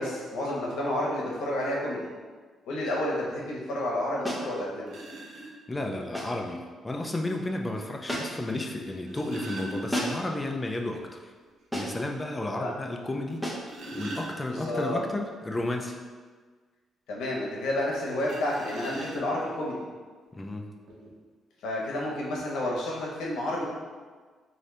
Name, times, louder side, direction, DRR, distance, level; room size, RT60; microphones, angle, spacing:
voice 1, 0.0-2.1 2.7-5.0 12.6-12.7 14.5-15.0 17.1-19.8 21.6-23.7, left 1 dB, 80° left, -3 dB, 0.9 m, -30 dB
sound 1, 4.2-4.5 6.1-6.4 8.1-8.5 9.9-10.3 11.7-12.1 13.4-13.7, equal, 5° right, 0.8 m, -32 dB
sound 2, 4.2-4.3 4.9-5.5 6.9-7.0 8.8-10.5 10.9-11.0 11.4-11.5 12.0-12.1 13.3-14.8 18.2-19.5 20.4-20.5 20.9-21.1, right 2 dB, 70° right, 0.8 m, -40 dB
voice 2, 5.7-11.0 11.7-13.5 13.9-16.0 20.3-20.6, left 2 dB, 20° left, 2 dB, 0.5 m, -32 dB
3.8 x 2.7 x 3.3 m, 1.5 s
cardioid pair, 90°, 0 cm